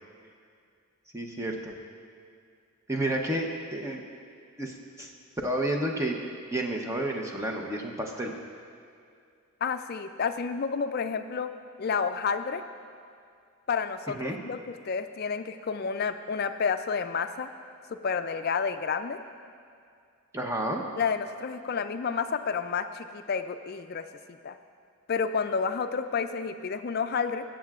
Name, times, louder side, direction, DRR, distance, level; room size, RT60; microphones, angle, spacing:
voice 1, 1.1-1.7 2.9-4.0 4.6-5.1 5.4-6.2 6.5-8.4 14.1-14.4 20.3-20.8, right 1 dB, 15° right, 1 dB, 0.7 m, -30 dB
voice 2, 9.6-11.5 11.8-12.6 13.7-17.5 17.9-19.2 21.0-24.6 25.1-27.4, left 5 dB, 45° left, 9 dB, 0.4 m, -30 dB
20.5 x 7.5 x 2.4 m, 2.4 s
head